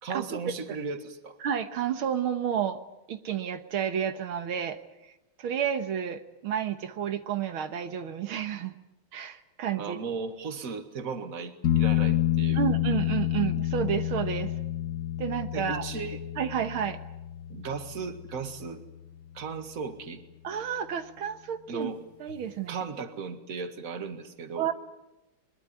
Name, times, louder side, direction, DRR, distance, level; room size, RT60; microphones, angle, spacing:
voice 1, 0.0-1.4 9.8-12.6 15.5-16.2 17.5-18.9 19.3-20.2 21.7-22.0 22.7-24.7, right 5 dB, 45° right, 8 dB, 2.1 m, -36 dB
voice 2, 1.4-2.8 3.1-4.8 5.4-8.8 9.1-10.0 12.5-14.5 15.2-15.8 16.4-17.0 20.4-21.9 22.2-22.8 24.5-24.7, right 9 dB, 85° right, 9 dB, 2.1 m, -30 dB
sound 1, 11.6-19.3 22.3-22.4, left 12 dB, 60° left, 2.1 m, -29 dB
22.5 x 22.0 x 9.6 m, 0.97 s
omnidirectional pair, 2.2 m